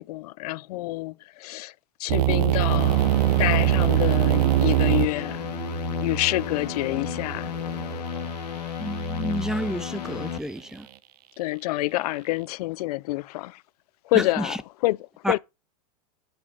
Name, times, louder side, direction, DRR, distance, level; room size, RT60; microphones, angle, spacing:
voice 1, 0.0-1.7 2.0-3.1 3.4-5.5 6.0-7.5 7.8-8.3 11.4-13.6 14.0-15.4, left 19 dB, 70° left, 0.6 m, -28 dB
sound 1, 2.1-8.0, right 17 dB, 75° right, 0.8 m, -23 dB
sound 2, 2.7-10.4, left 5 dB, 90° left, 1.7 m, -32 dB
voice 2, 8.8-10.9 14.1-14.5 15.2-15.4, equal, 5° right, 0.7 m, -30 dB
12.0 x 6.2 x 5.2 m
supercardioid pair, 120°, 20 cm